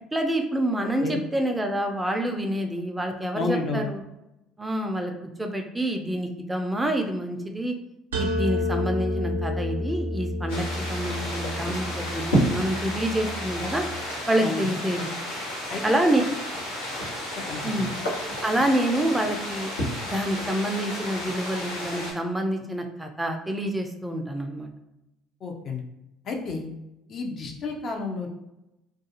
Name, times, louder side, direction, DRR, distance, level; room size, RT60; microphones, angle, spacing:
voice 1, 0.1-4.0 4.6-5.1 5.4-7.7 8.1-13.8 14.3-15.0 15.8-16.2 17.6-17.9 18.4-19.7 20.0-24.7, right 1 dB, 10° right, 4 dB, 0.4 m, -27 dB
voice 2, 3.3-3.8 14.4-14.7 15.7-15.8 17.5-17.9 25.4-25.8 26.2-26.7 27.1-28.3, left 3 dB, 50° left, 2 dB, 0.5 m, -30 dB
sound 1, 8.1-13.9, left 1 dB, 85° right, 0.5 m, -30 dB
sound 2, 10.5-22.1, equal, 85° left, 1.0 m, -31 dB
2.4 x 2.3 x 2.8 m, 0.92 s
figure-of-eight pair, 60°, 0 cm